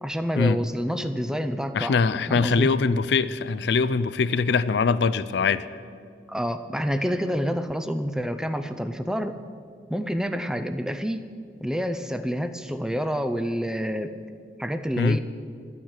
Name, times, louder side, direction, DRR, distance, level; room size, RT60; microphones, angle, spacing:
voice 1, 0.0-2.0 2.3-2.7 6.3-9.4 9.9-11.3 11.6-14.1 14.6-15.2, equal, 5° right, 9 dB, 0.5 m, -28 dB
voice 2, 1.7-5.7 15.0-15.2, left 4 dB, 70° left, 15 dB, 0.4 m, -22 dB
12.0 x 9.3 x 8.1 m, 2.3 s
head